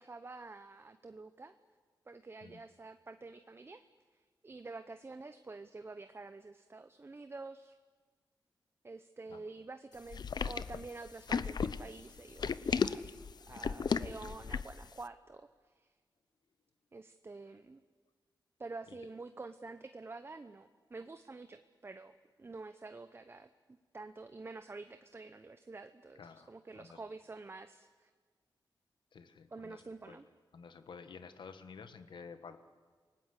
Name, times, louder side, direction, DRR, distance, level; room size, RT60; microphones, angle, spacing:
voice 1, 0.0-1.5 2.1-3.8 4.4-7.8 8.8-13.1 13.4-15.9 16.9-17.8 18.6-22.1 22.4-23.5 23.9-28.1 29.5-30.3, right 3 dB, 30° right, 10 dB, 0.8 m, -48 dB
sound 1, 10.1-14.8, left 6 dB, 60° left, 0.7 m, -34 dB
voice 2, 26.2-26.5 26.7-27.0 29.1-30.2 30.5-32.6, left 5 dB, 75° left, 10 dB, 1.5 m, -51 dB
29.0 x 19.0 x 8.2 m, 1.5 s
wide cardioid pair, 110°, 8 cm